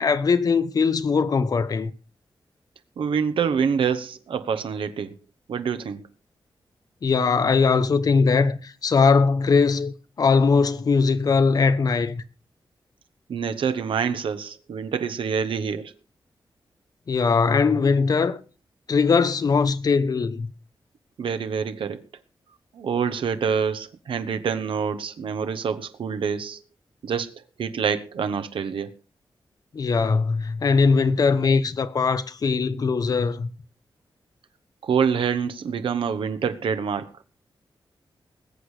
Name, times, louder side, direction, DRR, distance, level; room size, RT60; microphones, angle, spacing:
voice 1, 0.0-1.9 7.0-12.2 17.1-18.4 18.9-20.5 29.7-33.5, left 5 dB, 45° left, 0.9 m, -20 dB
voice 2, 3.0-5.2 5.5-6.0 13.3-15.9 21.2-22.0 22.7-26.6 27.0-28.9 34.8-37.1, right 6 dB, 85° right, 1.1 m, -26 dB
20.5 x 8.2 x 4.9 m
wide cardioid pair, 155°, 9 cm